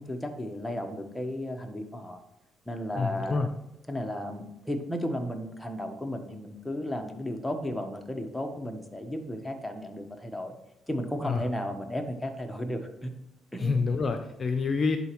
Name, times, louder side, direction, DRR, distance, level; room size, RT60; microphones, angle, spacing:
voice 1, 0.0-2.2 2.7-3.4 3.9-10.5 10.9-13.1 13.5-13.8, equal, 5° left, 3 dB, 1.1 m, -34 dB
voice 2, 3.0-3.5 11.2-11.4 13.6-15.0, left 4 dB, 45° left, 6 dB, 0.6 m, -27 dB
10.5 x 4.2 x 3.1 m, 0.85 s
supercardioid pair, 70°, 0 cm